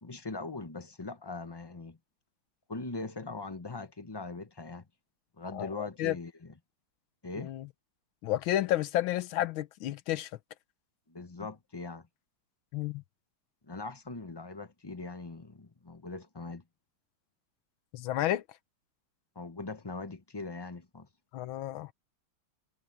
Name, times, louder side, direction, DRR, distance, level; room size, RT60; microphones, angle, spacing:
voice 1, 0.0-2.0 2.7-4.9 5.4-6.5 7.2-7.5 11.1-12.1 13.6-16.6 19.3-21.1, left 3 dB, 20° left, 0.8 m, -41 dB
voice 2, 5.5-6.2 7.4-7.7 8.2-10.3 12.7-13.0 17.9-18.4 21.3-21.9, left 13 dB, 90° left, 1.6 m, -31 dB
omnidirectional pair, 2.1 m